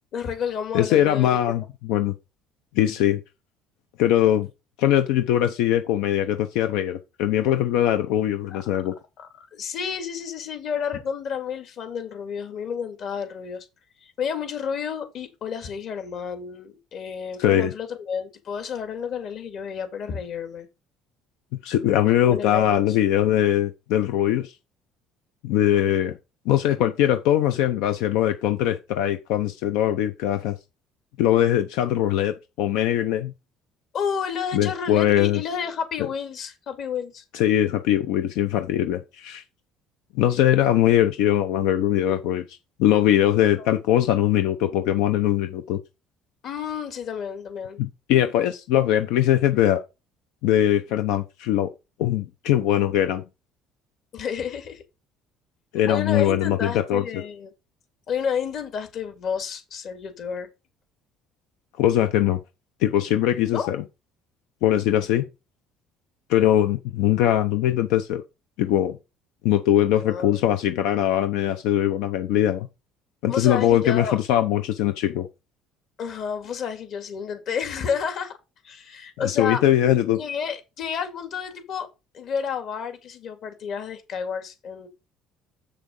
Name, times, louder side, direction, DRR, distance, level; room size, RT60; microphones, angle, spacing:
voice 1, 0.1-1.3 8.5-8.6 9.2-13.7 14.0-20.7 22.0-22.8 25.7-26.0 33.9-37.2 43.6-43.7 46.4-47.8 54.1-54.8 55.9-57.5 58.1-60.5 63.5-63.7 70.0-70.4 73.3-74.2 76.0-78.3 78.6-79.6 80.2-81.9 82.1-84.9, left 7 dB, 50° left, 2.1 m, -30 dB
voice 2, 0.7-2.1 2.7-3.2 4.0-4.5 4.8-8.9 17.4-17.7 21.6-24.5 25.4-26.1 26.5-30.6 31.2-33.3 34.5-35.4 37.3-39.4 40.1-42.4 42.8-45.8 47.8-49.8 50.4-51.7 52.0-53.2 55.7-57.0 61.8-62.4 62.8-63.8 64.6-65.3 66.3-68.2 68.6-69.0 69.4-72.7 73.2-75.3 79.2-80.2, left 12 dB, 85° left, 0.8 m, -21 dB
7.7 x 6.7 x 3.8 m
cardioid pair, 140°, 0 cm